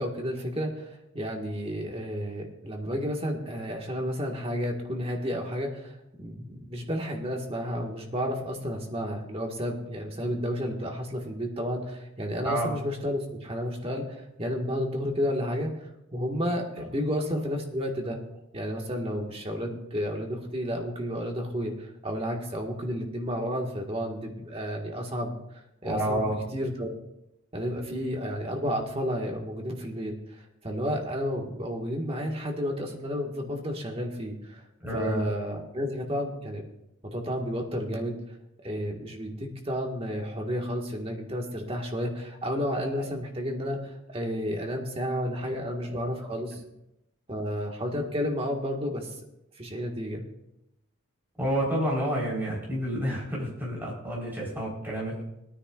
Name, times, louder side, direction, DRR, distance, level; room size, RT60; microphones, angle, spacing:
voice 1, 0.0-18.2 18.5-25.4 25.8-26.3 26.5-26.9 27.5-34.6 34.9-36.6 37.0-38.2 38.6-46.6 47.3-49.1 49.6-50.2, equal, 25° right, 1 dB, 1.6 m, -31 dB
voice 2, 25.8-26.4 34.8-35.2 43.0-43.1 45.4-45.5 45.8-46.0 51.4-55.1, equal, 10° right, -5 dB, 4.0 m, -29 dB
21.0 x 9.8 x 2.5 m, 0.87 s
head